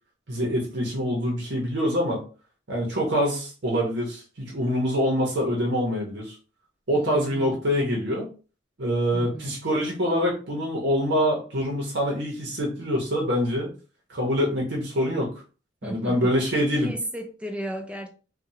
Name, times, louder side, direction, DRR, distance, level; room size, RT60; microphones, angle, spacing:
voice 1, 0.3-2.2 2.7-6.3 6.9-8.3 8.8-13.7 14.1-15.3 15.8-16.9, equal, 65° right, 1.0 m, -25 dB
voice 2, 6.9-7.6 9.1-9.6 15.8-16.4 16.7-18.1, right 1 dB, 5° right, 0.4 m, -35 dB
3.4 x 2.3 x 2.7 m
head